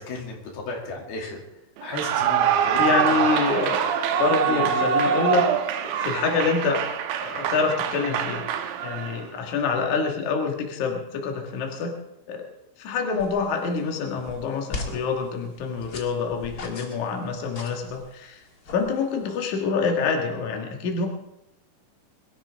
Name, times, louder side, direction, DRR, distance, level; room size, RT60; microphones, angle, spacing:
voice 1, 0.0-1.4 1.8-3.2 4.5-4.9 6.2-6.3, left 3 dB, 90° left, 0 dB, 4.5 m, -34 dB
Clapping / Cheering / Applause, 1.9-9.3, right 8 dB, 80° right, 2.6 m, -24 dB
voice 2, 2.8-3.9 4.2-5.5 5.8-6.9 7.2-8.5 8.8-12.0 12.3-12.4 12.8-21.1, left 5 dB, 60° left, 2 dB, 2.8 m, -26 dB
sound 1, 13.2-19.4, left 3 dB, 40° left, 1.4 m, -41 dB
22.0 x 13.0 x 3.5 m, 0.87 s
omnidirectional pair, 4.3 m